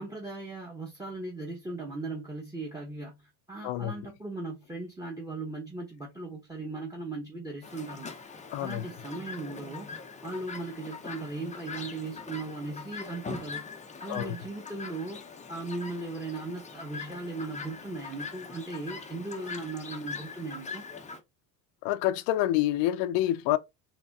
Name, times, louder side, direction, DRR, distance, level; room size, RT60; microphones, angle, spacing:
voice 1, 0.0-8.1 8.6-9.9 10.2-13.6 14.0-15.2 15.5-20.9, right 3 dB, 10° right, 0.8 m, -38 dB
voice 2, 3.6-3.9 8.5-8.9 14.1-14.4 21.8-23.6, left 14 dB, 65° left, 0.6 m, -27 dB
Chirp tweet, 7.6-21.2, left 4 dB, 15° left, 0.5 m, -42 dB
4.1 x 2.5 x 2.3 m
supercardioid pair, 85°, 48 cm